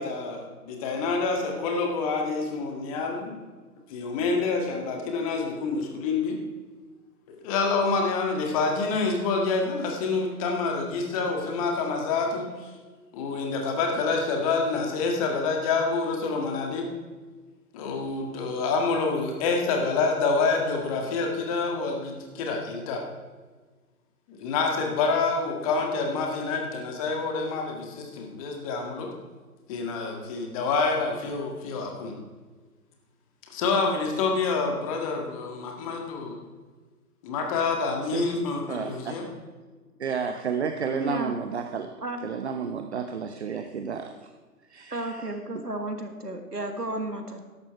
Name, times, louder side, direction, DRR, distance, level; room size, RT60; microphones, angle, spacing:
voice 1, 0.0-3.5 3.9-6.4 7.3-12.7 13.1-16.9 17.7-23.0 24.3-29.1 29.7-32.1 33.5-36.4 37.2-39.2, left 4 dB, 20° left, 2 dB, 1.8 m, -27 dB
voice 2, 38.7-39.1 40.0-41.9 42.2-44.3 44.7-45.3 45.5-45.6, right 6 dB, 45° right, 7 dB, 0.9 m, -31 dB
voice 3, 41.0-41.4 42.0-42.2 44.9-47.4, right 2 dB, 85° right, 6 dB, 2.0 m, -33 dB
13.5 x 11.5 x 4.5 m, 1.4 s
figure-of-eight pair, 130°, 46 cm